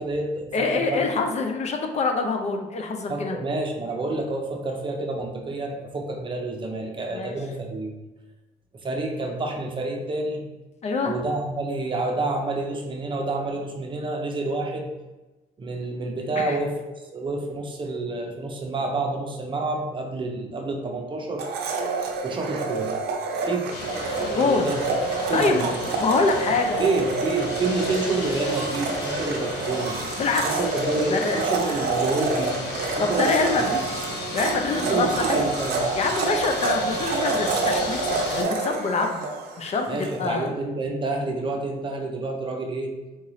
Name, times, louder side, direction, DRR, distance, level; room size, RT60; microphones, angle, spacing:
voice 1, 0.0-1.0 3.1-7.9 8.8-10.4 11.1-14.9 15.6-16.7 17.1-21.4 22.2-22.9 23.4-23.7 24.2-24.8 25.3-25.8 26.8-30.0 30.4-32.6 33.0-33.4 34.7-35.9 39.9-42.9, right 2 dB, 30° right, 2 dB, 0.6 m, -28 dB
voice 2, 0.5-3.4 7.1-7.4 10.8-11.2 16.4-16.6 24.2-24.7 25.3-26.9 30.2-30.6 31.1-31.4 33.0-33.9 34.3-35.4 36.0-39.3 39.6-40.5, left 4 dB, 40° left, 4 dB, 0.4 m, -25 dB
Domestic sounds home sounds, 21.4-40.2, right 4 dB, 75° right, 0.6 m, -28 dB
sound 1, 23.7-38.4, left 4 dB, 90° left, 0.6 m, -35 dB
3.7 x 2.5 x 3.1 m, 1.1 s
cardioid pair, 110°, 17 cm